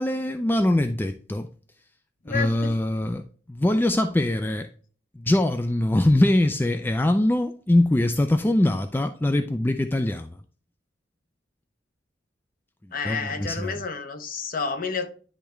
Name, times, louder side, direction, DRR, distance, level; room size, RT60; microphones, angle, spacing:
voice 1, 0.0-1.5 2.3-3.2 3.5-4.7 5.2-10.3 13.0-13.7, left 1 dB, 10° left, 0.3 m, -22 dB
voice 2, 2.3-2.7 12.9-15.1, left 5 dB, 50° left, 0.9 m, -30 dB
10.0 x 3.4 x 3.1 m
head